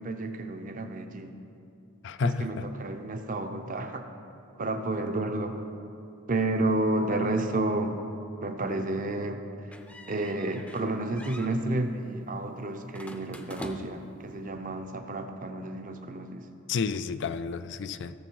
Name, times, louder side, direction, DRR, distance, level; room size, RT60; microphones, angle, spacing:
voice 1, 0.0-1.3 2.2-4.1 4.6-5.6 6.3-8.0 8.4-9.4 10.1-16.4, right 2 dB, 40° right, 6 dB, 0.7 m, -31 dB
voice 2, 2.0-2.6 16.7-18.1, left 5 dB, 60° left, 12 dB, 0.4 m, -31 dB
sound 1, 9.7-10.9 11.2-11.5 12.9-14.1, left 1 dB, 5° left, 0.6 m, -44 dB
16.5 x 7.1 x 4.6 m, 2.7 s
head